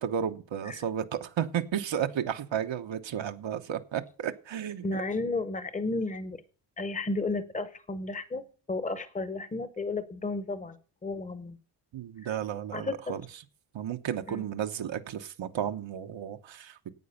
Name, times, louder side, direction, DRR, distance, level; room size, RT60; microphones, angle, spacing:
voice 1, 0.0-5.0 11.9-13.2 13.7-16.9, right 9 dB, 85° right, 7 dB, 1.1 m, -33 dB
voice 2, 4.8-6.4 6.8-10.8 11.0-11.6 12.2-12.3 12.7-13.0 14.3-14.4, left 3 dB, 15° left, 12 dB, 0.8 m, -33 dB
9.5 x 8.9 x 6.9 m, 0.39 s
wide cardioid pair, 180°, 44 cm